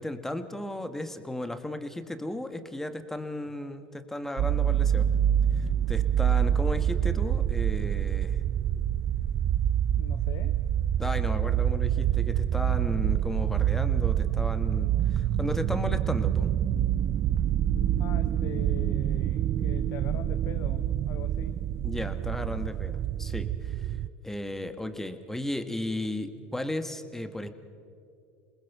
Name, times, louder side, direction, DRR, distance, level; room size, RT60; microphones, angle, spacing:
voice 1, 0.0-5.1 5.6-8.4 11.0-16.5 21.8-24.0 24.2-27.5, left 1 dB, 5° left, 9 dB, 1.6 m, -35 dB
sound 1, 4.4-24.1, right 10 dB, 50° right, 0.6 m, -26 dB
voice 2, 10.0-10.6 18.0-21.6, left 10 dB, 60° left, 9 dB, 0.9 m, -42 dB
28.0 x 20.0 x 6.2 m, 2.5 s
hypercardioid pair, 90°, 6 cm